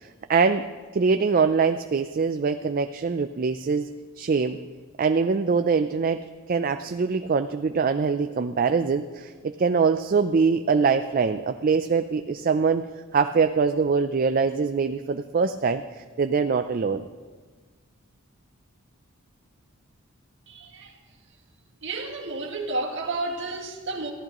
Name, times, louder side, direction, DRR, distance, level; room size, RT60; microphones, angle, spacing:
voice 1, 0.0-0.7 0.9-3.9 4.2-4.6 5.0-6.2 6.5-12.9 13.1-17.0, right 5 dB, 40° right, 9 dB, 0.4 m, -23 dB
voice 2, 20.5-20.9 21.8-24.1, right 2 dB, 60° right, 0 dB, 1.9 m, -31 dB
22.5 x 14.5 x 3.0 m, 1.5 s
head